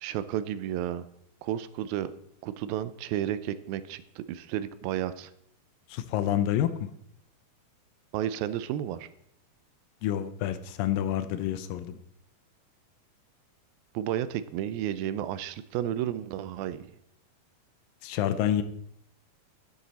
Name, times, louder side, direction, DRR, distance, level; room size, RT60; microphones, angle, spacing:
voice 1, 0.0-1.1 1.4-2.1 2.4-5.3 8.1-9.1 13.9-16.9, right 11 dB, 85° right, 14 dB, 2.4 m, -32 dB
voice 2, 5.9-6.9 10.0-12.0 18.0-18.6, left 11 dB, 80° left, 11 dB, 2.2 m, -28 dB
12.0 x 7.5 x 4.1 m, 0.73 s
omnidirectional pair, 4.3 m